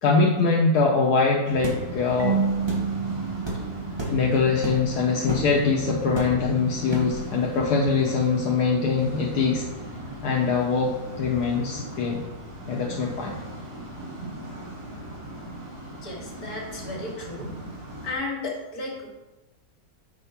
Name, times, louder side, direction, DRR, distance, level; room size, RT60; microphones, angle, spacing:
voice 1, 0.0-2.4 4.1-9.6 10.2-12.2 12.7-13.4, left 4 dB, 90° left, -2 dB, 1.5 m, -23 dB
sound 1, 1.4-18.1, right 1 dB, 85° right, 2.3 m, -38 dB
sound 2, 1.6-1.8 2.7-2.9 3.4-3.6 4.0-4.2 4.6-4.9 5.3-5.5 6.1-6.5 6.9-7.2, right 1 dB, 20° right, 1.3 m, -31 dB
Marimba xylophone / Wood, 2.2-4.9, right 6 dB, 45° right, 0.7 m, -29 dB
voice 2, 15.9-17.5 18.0-19.1, left 2 dB, 70° left, -3 dB, 2.4 m, -34 dB
6.8 x 4.7 x 5.7 m, 1.1 s
omnidirectional pair, 1.7 m